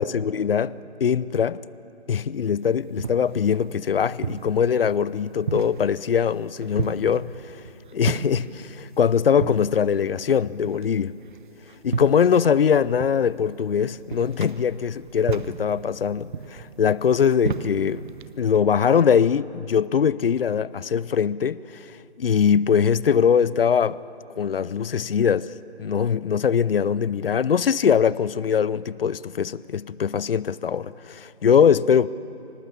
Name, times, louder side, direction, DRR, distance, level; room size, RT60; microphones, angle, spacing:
voice 1, 0.0-1.6 2.1-7.6 7.9-11.2 11.8-18.1 18.4-24.0 24.4-25.5 25.8-32.1, left 7 dB, 60° left, 0.6 m, -22 dB
sound 1, 2.5-18.4, right 6 dB, 50° right, 0.7 m, -35 dB
26.0 x 18.5 x 8.5 m
figure-of-eight pair, 155°, 33 cm